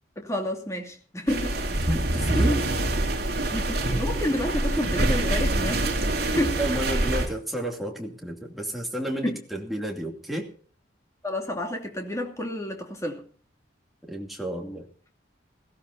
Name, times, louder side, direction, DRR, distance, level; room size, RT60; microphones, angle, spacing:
voice 1, 0.2-1.5 3.5-5.8 6.2-6.6 9.2-9.4 11.2-13.2, left 1 dB, 15° left, 2.7 m, -29 dB
sound 1, 1.3-7.3, right 1 dB, 55° right, 2.9 m, -25 dB
voice 2, 1.9-2.7 6.6-10.5 14.1-14.9, right 1 dB, ahead, 2.7 m, -31 dB
21.0 x 16.0 x 2.8 m
head